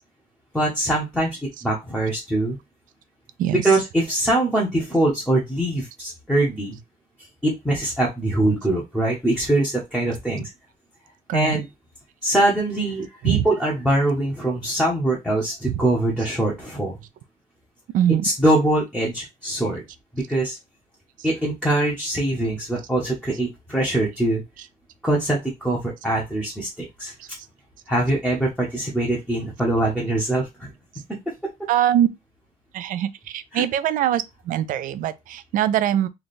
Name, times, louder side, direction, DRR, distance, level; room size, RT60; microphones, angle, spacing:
voice 1, 0.5-2.6 3.6-6.8 7.4-10.5 11.3-11.7 12.2-17.0 18.2-19.8 20.1-20.6 21.2-24.4 25.0-27.1 27.9-30.7 31.1-31.2 33.5-33.6, right 1 dB, 5° left, 0.9 m, -23 dB
voice 2, 11.3-11.6 13.2-13.5 15.7-15.8 17.9-18.2 27.2-27.3 31.7-32.1 32.7-36.1, right 11 dB, 60° right, 0.4 m, -22 dB
3.3 x 2.3 x 4.1 m
cardioid pair, 160°, 16 cm